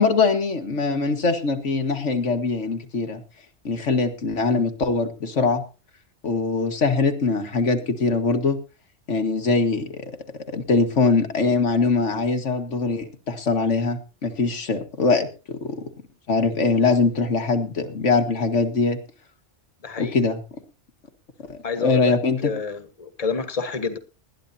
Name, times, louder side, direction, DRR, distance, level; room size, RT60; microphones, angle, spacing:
voice 1, 0.0-3.2 3.6-5.6 6.2-8.6 9.1-10.1 10.5-15.9 16.3-19.0 20.0-20.4 21.5-22.5, left 4 dB, 90° left, 6 dB, 2.0 m, -22 dB
voice 2, 19.8-20.2 21.6-22.1 22.4-24.0, left 5 dB, 30° left, 9 dB, 1.4 m, -28 dB
20.0 x 13.0 x 2.8 m, 0.33 s
omnidirectional pair, 1.2 m